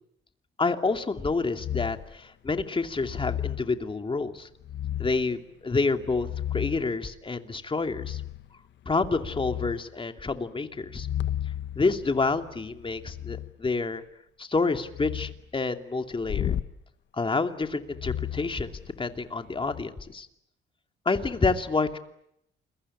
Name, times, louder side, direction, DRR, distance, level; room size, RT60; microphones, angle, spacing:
voice 1, 0.6-4.5 5.0-8.2 8.9-11.1 11.8-14.0 14.4-16.5 17.1-18.7 19.0-20.3 21.1-22.0, left 3 dB, 25° left, 6 dB, 2.7 m, -28 dB
sound 1, 1.6-2.1 2.9-3.7 4.6-5.3 5.9-6.9 7.9-8.5 8.9-9.8 10.8-13.5 14.8-15.4 16.2-16.7 17.9-19.1 19.6-19.8, left 11 dB, 65° left, 1.3 m, -34 dB
29.0 x 23.0 x 8.6 m, 0.79 s
cardioid pair, 90°, 20 cm